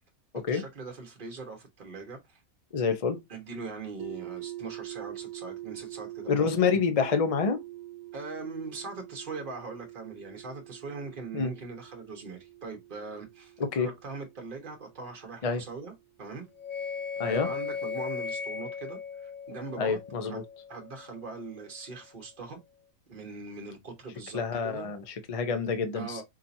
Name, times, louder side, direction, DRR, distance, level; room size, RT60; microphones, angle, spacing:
voice 1, 0.5-2.4 3.3-6.6 8.1-15.9 16.2-16.5 17.2-20.4 20.7-22.6 23.1-24.9 25.9-26.2, right 4 dB, 35° right, 1.3 m, -41 dB
voice 2, 2.7-3.2 6.3-7.6 11.3-11.5 13.6-13.9 15.4-15.6 17.2-17.5 19.8-20.4 24.3-26.2, left 5 dB, 40° left, 0.5 m, -27 dB
sound 1, 4.0-15.9, right 16 dB, 75° right, 1.2 m, -45 dB
sound 2, 16.6-21.7, left 6 dB, 70° left, 1.2 m, -37 dB
4.9 x 2.8 x 2.6 m
omnidirectional pair, 1.5 m